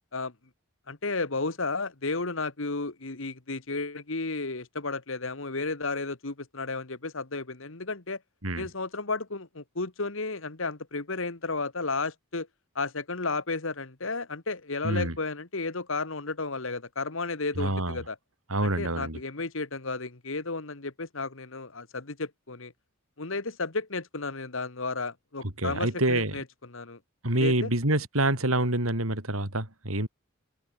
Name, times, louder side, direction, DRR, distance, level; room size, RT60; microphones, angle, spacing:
voice 1, 0.9-8.2 8.6-12.5 12.7-18.1 18.6-22.7 23.2-27.0 27.4-27.7, left 3 dB, 70° left, 1.8 m, -33 dB
voice 2, 14.8-15.2 17.6-18.0 18.5-19.2 25.4-26.4 27.2-30.1, right 1 dB, 85° right, 5.5 m, -27 dB
open air
head